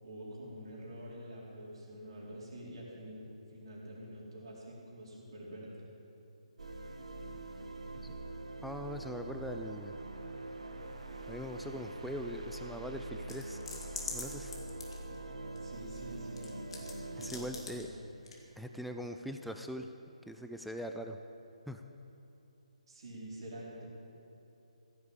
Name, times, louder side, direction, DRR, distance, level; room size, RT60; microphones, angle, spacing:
voice 1, 0.0-3.3 3.5-5.8 15.6-16.5 17.1-17.9 22.9-23.8, equal, 45° right, -5 dB, 4.2 m, -47 dB
sound 1, 6.6-17.5, right 2 dB, 65° right, 1.5 m, -44 dB
voice 2, 8.6-10.0 11.3-13.6 14.1-14.6 17.2-17.9 18.6-19.9 20.3-21.2 21.7-21.8, equal, ahead, 5 dB, 0.4 m, -41 dB
sound 2, 13.3-15.6 16.0-16.9 17.2-17.8 18.3-18.4, left 4 dB, 50° left, 2.7 m, -42 dB
16.0 x 8.0 x 8.6 m, 2.8 s
figure-of-eight pair, 140°, 4 cm